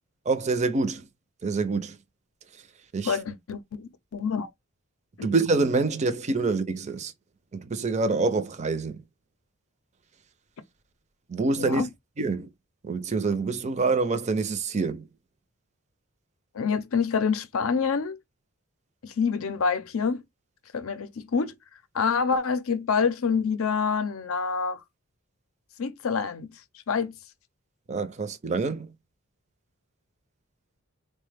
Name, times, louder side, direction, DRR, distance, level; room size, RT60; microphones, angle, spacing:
voice 1, 0.3-1.0 1.4-1.9 2.9-3.2 5.2-7.1 7.7-9.0 11.3-11.8 12.2-12.5 12.9-15.0 27.9-28.9, right 3 dB, 35° right, 0.5 m, -26 dB
voice 2, 3.0-4.5 5.2-5.3 11.6-11.9 16.5-18.2 19.0-20.2 20.7-21.5 21.9-24.8 25.8-26.6 26.9-27.2, left 5 dB, 70° left, 0.5 m, -27 dB
3.9 x 2.1 x 3.3 m
head